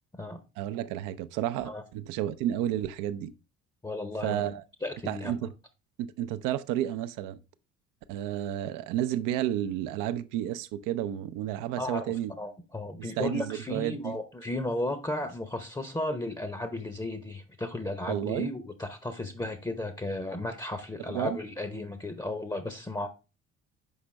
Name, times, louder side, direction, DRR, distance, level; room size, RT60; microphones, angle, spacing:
voice 1, 0.6-3.3 4.2-4.6 5.1-5.5 6.0-7.4 8.1-12.3 13.0-14.1 18.1-18.5 21.1-21.4, right 12 dB, 60° right, 0.6 m, -31 dB
voice 2, 3.8-4.5 4.8-5.3 11.8-23.1, left 1 dB, 10° left, 0.8 m, -34 dB
6.4 x 5.1 x 3.2 m
hypercardioid pair, 50°, 36 cm